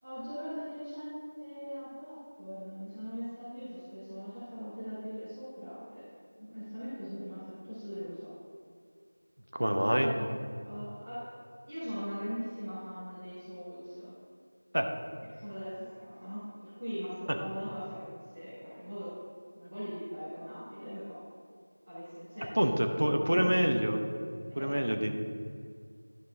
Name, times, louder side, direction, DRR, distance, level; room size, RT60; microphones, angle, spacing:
voice 1, 0.0-6.0 6.4-8.3 9.7-11.2 11.7-14.1 15.3-18.0 18.3-19.1 19.5-21.2 21.8-22.8 23.1-23.4 24.5-24.8, equal, 10° right, -23 dB, 2.3 m, -41 dB
voice 2, 9.5-10.1 14.7-14.9 22.6-24.0 24.5-25.1, equal, 50° right, 4 dB, 0.8 m, -27 dB
12.5 x 5.4 x 3.8 m, 2.2 s
figure-of-eight pair, 175°, 0 cm